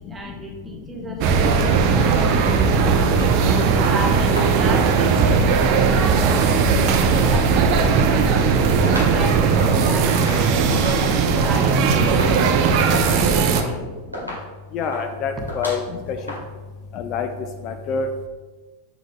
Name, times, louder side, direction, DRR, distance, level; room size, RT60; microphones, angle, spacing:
voice 1, 0.0-2.9 3.4-6.7 7.1-13.8, right 2 dB, 15° right, 0 dB, 1.1 m, -34 dB
sound 1, 1.2-13.6, right 5 dB, 40° right, 0.6 m, -18 dB
sound 2, 3.0-3.3 3.8-4.0 4.3-5.0 5.8-7.5 7.9-9.2 9.5-16.4, equal, 90° left, 2.0 m, -35 dB
voice 2, 14.7-15.8 16.1-16.2 16.9-17.3 17.6-18.1, left 6 dB, 35° left, 6 dB, 0.4 m, -26 dB
7.7 x 6.3 x 2.3 m, 1.3 s
figure-of-eight pair, 90°, 0 cm